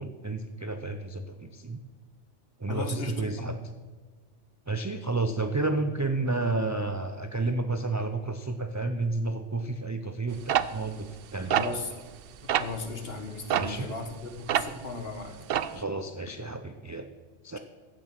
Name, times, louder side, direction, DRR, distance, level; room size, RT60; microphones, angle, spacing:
voice 1, 0.0-1.8 2.6-3.6 4.7-11.8 13.5-13.9 15.7-17.1 17.4-17.6, right 3 dB, 30° right, 7 dB, 0.3 m, -31 dB
voice 2, 2.7-3.5 11.5-11.9 12.4-15.4, left 3 dB, 60° left, 6 dB, 1.5 m, -36 dB
sound 1, 10.5-12.2 12.5-12.8 13.5-14.9 15.2-15.8, right 10 dB, 65° right, 0.7 m, -27 dB
15.0 x 7.1 x 5.9 m, 1.4 s
omnidirectional pair, 1.2 m